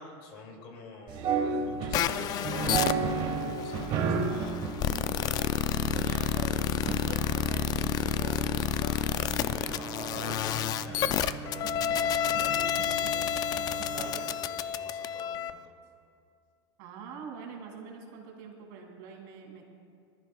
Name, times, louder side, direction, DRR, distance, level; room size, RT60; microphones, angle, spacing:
voice 1, 0.0-4.6 5.0-7.0 7.5-10.4 10.7-15.7, left 3 dB, 50° left, 1 dB, 2.4 m, -48 dB
sound 1, 1.1-14.4, right 5 dB, 35° right, 1.2 m, -34 dB
sound 2, 1.9-15.5, left 10 dB, 30° left, 0.4 m, -30 dB
voice 2, 16.8-19.7, right 6 dB, 55° right, 0 dB, 2.6 m, -44 dB
21.0 x 14.0 x 2.3 m, 2.4 s
supercardioid pair, 145°, 14 cm